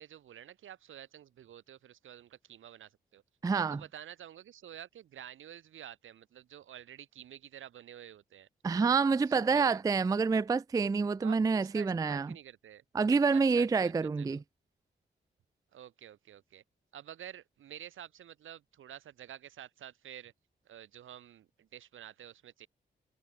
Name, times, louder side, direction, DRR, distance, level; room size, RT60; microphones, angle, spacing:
voice 1, 0.0-3.2 3.5-8.5 9.3-9.8 11.2-12.8 13.3-14.4 15.7-16.6 16.9-20.3 20.6-22.7, right 11 dB, 85° right, 6.2 m, -50 dB
voice 2, 3.4-3.8 8.6-12.3 12.9-14.4, right 4 dB, 20° right, 0.3 m, -27 dB
supercardioid pair, 45°, 20 cm